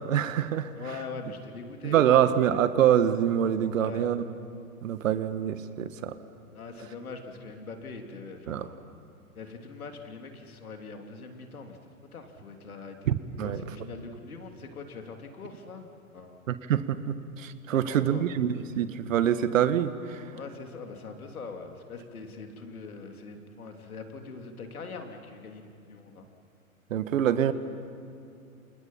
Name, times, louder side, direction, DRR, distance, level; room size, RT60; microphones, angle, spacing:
voice 1, 0.0-0.7 1.8-4.2 4.8-6.2 8.5-8.7 13.1-13.6 16.5-20.2 26.9-27.5, right 10 dB, 65° right, 12 dB, 1.5 m, -25 dB
voice 2, 0.7-2.5 3.7-4.1 6.5-8.8 9.3-16.4 17.7-18.3 20.3-26.3, left 4 dB, 75° left, 4 dB, 3.3 m, -42 dB
29.5 x 28.0 x 5.7 m, 2.7 s
figure-of-eight pair, 110°, 43 cm